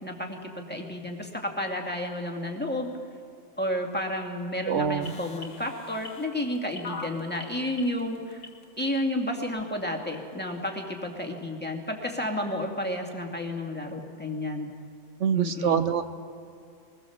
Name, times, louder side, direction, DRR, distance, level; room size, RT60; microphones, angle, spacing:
voice 1, 0.0-2.9 3.6-8.5 8.8-14.7 15.3-15.8, left 1 dB, 10° left, 0 dB, 2.4 m, -31 dB
voice 2, 4.7-5.1 15.2-16.1, right 7 dB, 75° right, 10 dB, 1.1 m, -25 dB
sound 1, 5.0-9.0 9.6-9.7, left 3 dB, 90° left, 2.1 m, -41 dB
24.0 x 20.5 x 7.2 m, 2.3 s
omnidirectional pair, 1.3 m